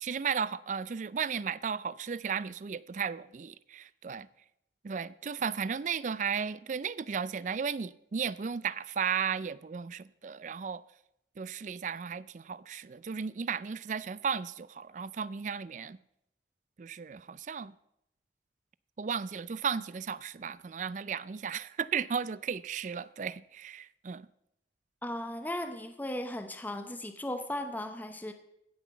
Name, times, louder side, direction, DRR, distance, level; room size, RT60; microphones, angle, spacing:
voice 1, 0.0-4.3 4.8-10.8 11.4-16.0 16.8-17.7 19.0-24.3, right 6 dB, 45° right, 0.4 m, -35 dB
voice 2, 25.0-28.3, left 1 dB, 10° left, 0.7 m, -36 dB
15.5 x 5.9 x 7.0 m
head